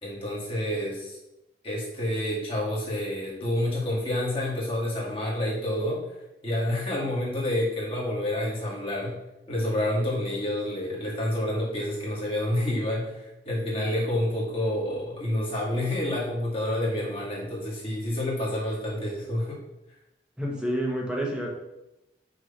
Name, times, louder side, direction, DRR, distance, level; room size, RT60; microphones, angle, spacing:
voice 1, 0.0-1.2 1.6-6.0 6.4-9.1 9.5-19.6, left 1 dB, 30° left, -6 dB, 2.3 m, -28 dB
voice 2, 20.4-21.5, equal, 5° right, -1 dB, 1.3 m, -28 dB
6.4 x 3.7 x 5.6 m, 0.93 s
head